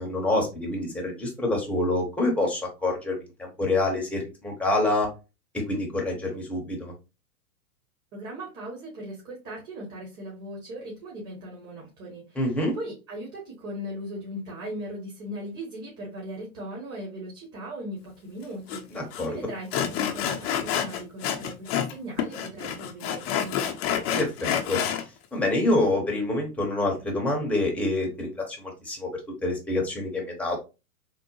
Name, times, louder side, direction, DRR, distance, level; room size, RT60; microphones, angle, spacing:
voice 1, 0.0-5.1 5.5-6.9 12.4-12.8 18.9-19.3 24.1-24.8 25.3-29.1 29.4-30.6, left 2 dB, 5° left, -1 dB, 0.8 m, -27 dB
voice 2, 8.1-23.8, equal, 30° right, -2 dB, 1.3 m, -38 dB
Sawing, 18.7-18.8 19.1-19.3 19.7-21.9 22.2-25.0, left 9 dB, 45° left, 0.7 m, -28 dB
3.5 x 2.1 x 3.0 m, 0.29 s
hypercardioid pair, 115°, 43 cm